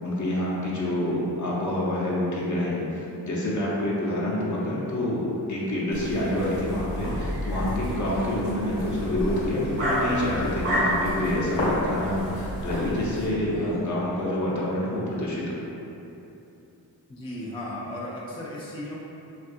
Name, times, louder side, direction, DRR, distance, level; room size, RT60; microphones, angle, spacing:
voice 1, 0.0-15.6, left 1 dB, 40° left, -5 dB, 0.7 m, -27 dB
sound 1, 5.9-13.3, left 1 dB, 90° left, 0.8 m, -32 dB
sound 2, 6.0-13.8, equal, 80° right, 0.9 m, -33 dB
voice 2, 17.1-19.0, left 1 dB, 15° left, -6 dB, 0.3 m, -35 dB
2.6 x 2.4 x 2.4 m, 2.9 s
supercardioid pair, 45°, 45 cm